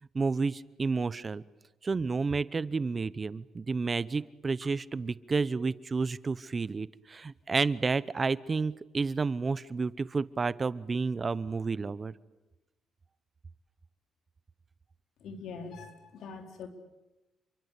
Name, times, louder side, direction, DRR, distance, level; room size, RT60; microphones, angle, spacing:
voice 1, 0.1-1.4 1.8-12.1, right 4 dB, 30° right, 18 dB, 0.9 m, -30 dB
voice 2, 15.2-16.7, left 4 dB, 75° left, 6 dB, 4.2 m, -43 dB
29.0 x 23.5 x 8.4 m, 1.0 s
cardioid pair, 90°, 0 cm